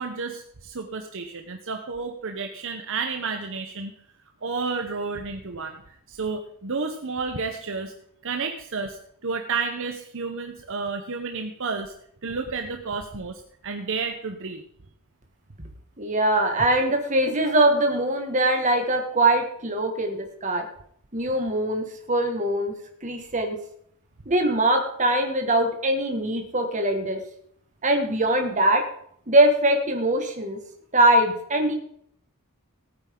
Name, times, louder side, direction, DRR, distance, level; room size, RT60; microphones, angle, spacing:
voice 1, 0.0-3.9 4.4-5.8 6.1-7.9 8.2-11.9 12.2-14.6, right 4 dB, 60° right, 5 dB, 1.0 m, -31 dB
voice 2, 16.0-20.7 21.1-22.7 23.0-23.6 24.3-27.2 27.8-28.9 29.3-30.6 30.9-31.7, right 1 dB, 35° right, 4 dB, 2.0 m, -22 dB
18.5 x 8.9 x 3.9 m, 0.68 s
head